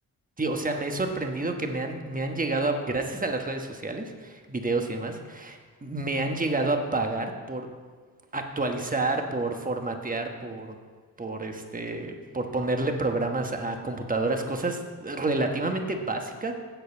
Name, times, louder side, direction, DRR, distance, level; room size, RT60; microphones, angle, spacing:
voice 1, 0.4-7.7 8.3-10.7 11.2-16.5, right 2 dB, 20° right, 4 dB, 1.2 m, -29 dB
8.1 x 6.5 x 8.1 m, 1.5 s
cardioid pair, 90°, 37 cm